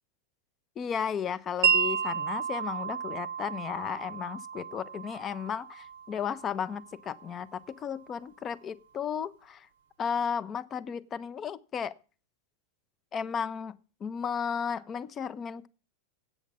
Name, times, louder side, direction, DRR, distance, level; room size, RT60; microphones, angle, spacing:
voice 1, 0.8-9.7 10.0-11.9 13.1-13.7 14.0-15.7, left 7 dB, 25° left, 0.5 m, -34 dB
Wind chime, 1.6-7.7, right 7 dB, 55° right, 0.6 m, -32 dB
8.3 x 8.1 x 8.3 m
figure-of-eight pair, 90°, 0 cm